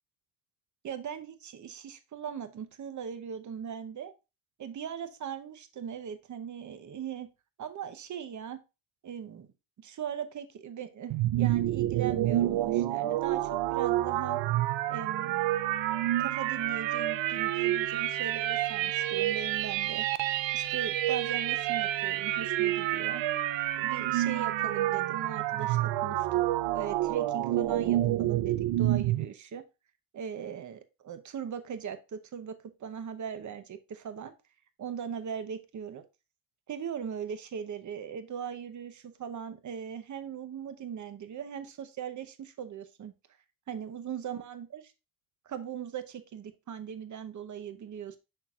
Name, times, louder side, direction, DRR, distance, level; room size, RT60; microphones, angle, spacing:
voice 1, 0.8-4.1 4.6-7.3 7.6-8.6 9.0-9.5 9.8-14.4 14.9-15.5 16.2-20.1 20.5-23.2 23.8-26.4 26.7-29.6 30.1-34.3 34.8-36.0 36.7-43.1 43.7-44.9 45.5-48.2, right 8 dB, 40° right, 10 dB, 0.8 m, -39 dB
sound 1, 11.1-29.2, right 14 dB, 70° right, 0.6 m, -28 dB
6.7 x 5.9 x 2.4 m, 0.27 s
cardioid pair, 140°, 47 cm